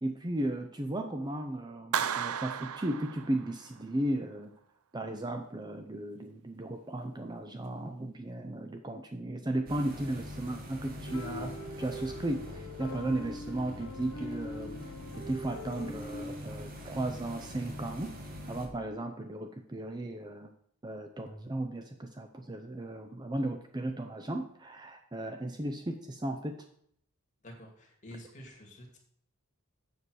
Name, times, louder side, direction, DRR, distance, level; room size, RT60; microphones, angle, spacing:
voice 1, 0.0-4.5 4.9-14.8 15.2-18.1 18.5-20.5 20.8-26.6, right 1 dB, 20° right, 5 dB, 0.6 m, -35 dB
Clapping, 1.9-3.8, right 8 dB, 75° right, 0.5 m, -34 dB
sound 1, 9.7-18.7, left 1 dB, 40° right, 1.5 m, -44 dB
sound 2, 11.1-16.4, left 1 dB, 85° left, 2.1 m, -43 dB
voice 2, 27.4-29.0, equal, 35° left, 1 dB, 2.3 m, -49 dB
7.6 x 6.9 x 6.3 m, 0.66 s
head